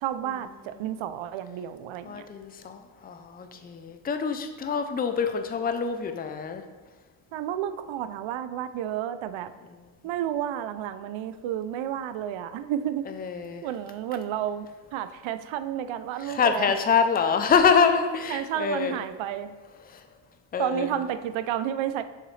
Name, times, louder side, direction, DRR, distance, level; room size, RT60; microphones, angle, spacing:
voice 1, 0.0-2.2 7.3-9.5 10.0-13.0 13.6-14.7 14.9-16.7 18.3-19.5 20.6-22.0, right 10 dB, 80° right, 11 dB, 0.6 m, -31 dB
voice 2, 2.1-6.6 13.2-13.6 16.3-19.0 20.5-20.9, left 6 dB, 20° left, 7 dB, 0.4 m, -25 dB
6.8 x 6.6 x 3.2 m, 1.3 s
cardioid pair, 135°, 46 cm